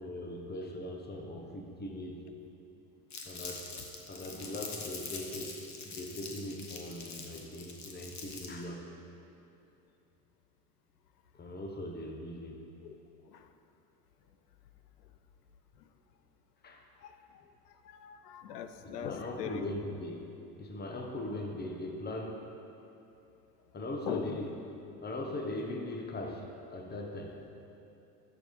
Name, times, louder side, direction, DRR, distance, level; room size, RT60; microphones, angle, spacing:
voice 1, 0.0-2.2 3.2-3.7 4.1-5.6 5.8-8.9 11.3-12.6 16.6-16.9 19.0-20.2 20.6-22.4 23.7-24.5 25.0-27.4, left 1 dB, 20° left, 2 dB, 1.0 m, -40 dB
Crumpling crinkling, 3.1-8.6, left 4 dB, 35° left, 1.3 m, -44 dB
voice 2, 17.9-19.8 24.1-24.4, left 7 dB, 90° left, 9 dB, 0.6 m, -40 dB
11.0 x 7.0 x 3.2 m, 2.8 s
hypercardioid pair, 70°, 46 cm